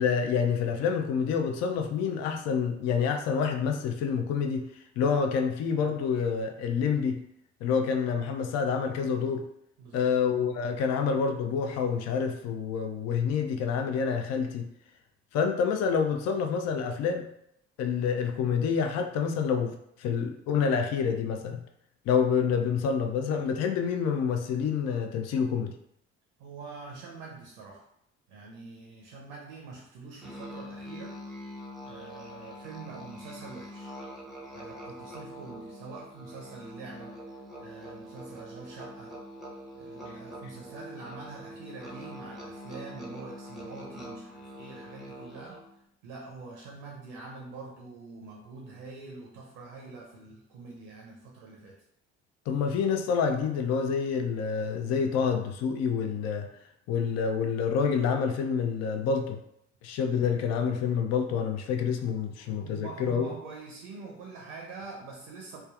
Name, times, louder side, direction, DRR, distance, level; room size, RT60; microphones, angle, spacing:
voice 1, 0.0-4.6 5.0-7.2 7.6-9.4 9.9-14.7 15.3-17.2 17.8-21.6 22.1-25.7 52.5-56.5 56.9-59.4 59.8-63.3, left 6 dB, 45° left, 5 dB, 0.5 m, -27 dB
voice 2, 9.8-10.1 26.4-27.9 28.3-31.2 31.8-33.9 34.5-37.2 37.6-39.2 39.7-45.6 46.0-51.8 62.4-65.6, right 4 dB, 70° right, -1 dB, 0.6 m, -45 dB
Musical instrument, 30.2-45.8, equal, ahead, 0.7 m, -44 dB
3.3 x 2.2 x 2.3 m, 0.74 s
figure-of-eight pair, 45°, 36 cm